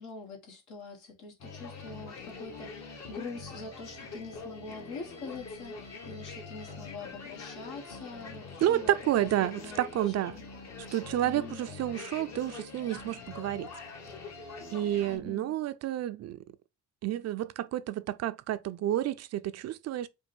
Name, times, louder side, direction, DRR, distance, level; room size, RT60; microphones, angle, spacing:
voice 1, 0.0-10.4 11.2-11.6 15.1-15.5, left 4 dB, 80° left, 1.4 m, -44 dB
sound 1, 1.4-15.2, left 4 dB, 60° left, 1.4 m, -44 dB
voice 2, 8.6-10.4 10.9-13.7 14.7-16.4 17.0-20.1, right 13 dB, 60° right, 0.4 m, -30 dB
5.2 x 2.2 x 3.3 m
cardioid pair, 90°, 30 cm